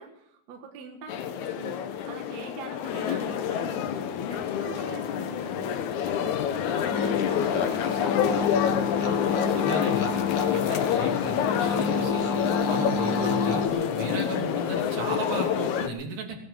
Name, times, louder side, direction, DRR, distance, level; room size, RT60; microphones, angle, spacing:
voice 1, 0.0-5.7 6.1-8.5, right 6 dB, 60° right, 3 dB, 2.7 m, -44 dB
sound 1, 1.1-15.9, left 8 dB, 70° left, 2.3 m, -27 dB
sound 2, 6.9-13.7, left 4 dB, 45° left, 1.9 m, -29 dB
voice 2, 9.3-12.3 12.7-16.4, right 2 dB, 85° right, 0 dB, 4.6 m, -36 dB
18.5 x 11.0 x 6.6 m, 0.77 s
omnidirectional pair, 3.7 m